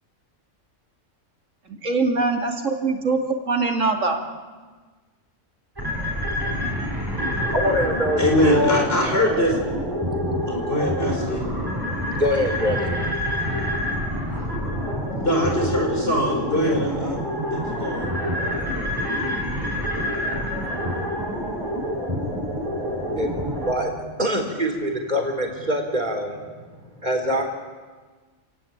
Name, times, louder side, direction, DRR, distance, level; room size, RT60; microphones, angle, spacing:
voice 1, 1.7-3.2 3.5-4.2, right 3 dB, 85° right, 3 dB, 2.9 m, -22 dB
sound 1, 5.8-23.7, equal, 15° right, 5.9 m, -27 dB
voice 2, 7.1-8.9 10.1-10.2 10.7-13.8 23.2-27.4, equal, 35° right, 3 dB, 4.3 m, -26 dB
voice 3, 8.2-9.5 10.5-11.4 15.2-17.2 17.5-18.1, equal, 50° left, 1 dB, 5.6 m, -22 dB
28.5 x 18.0 x 8.9 m, 1.4 s
omnidirectional pair, 1.3 m